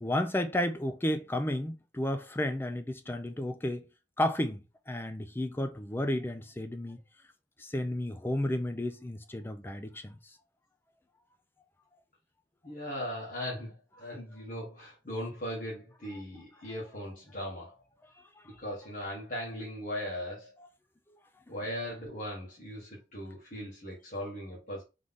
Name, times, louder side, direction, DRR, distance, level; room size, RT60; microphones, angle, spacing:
voice 1, 0.0-3.8 4.2-7.0 7.6-10.2, left 1 dB, 10° left, 0.4 m, -32 dB
voice 2, 12.6-17.8 18.4-20.5 21.5-24.8, equal, 45° left, 1.5 m, -39 dB
3.9 x 3.2 x 3.6 m
head